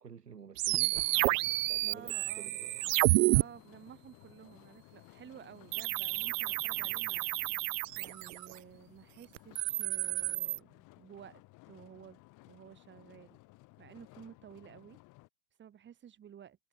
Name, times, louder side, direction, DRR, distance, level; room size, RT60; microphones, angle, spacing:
voice 1, 0.0-2.8, right 7 dB, 90° right, 6.9 m, -51 dB
sound 1, 0.6-3.4 5.7-8.5 9.4-10.6, right 19 dB, 55° right, 1.6 m, -30 dB
sound 2, 0.9-15.3, left 22 dB, 40° left, 5.8 m, -58 dB
voice 2, 1.8-2.6 3.3-7.3 8.0-13.4 13.8-15.0 15.6-16.6, right 9 dB, 25° right, 7.8 m, -53 dB
hypercardioid pair, 115°, 46 cm